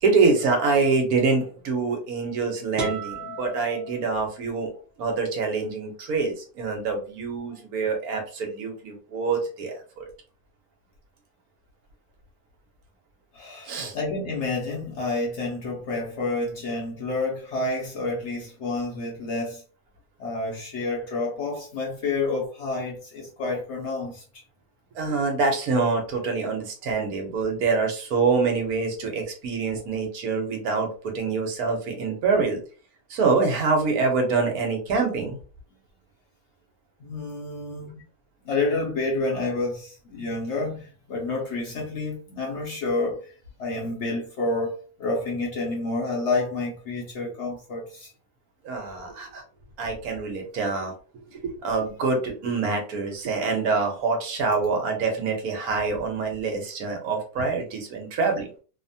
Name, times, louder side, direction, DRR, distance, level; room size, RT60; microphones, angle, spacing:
voice 1, 0.0-4.7 5.0-10.1 13.7-13.9 24.9-32.6 33.1-35.4 48.6-49.4 49.8-58.6, right 4 dB, 75° right, 1.2 m, -25 dB
sound 1, 2.7-4.7, right 2 dB, 45° right, 0.7 m, -35 dB
voice 2, 13.3-19.6 20.2-24.4 37.0-38.0 38.4-43.3 43.6-48.1 51.7-51.8, left 3 dB, 60° left, 0.8 m, -29 dB
2.9 x 2.1 x 2.6 m
omnidirectional pair, 1.6 m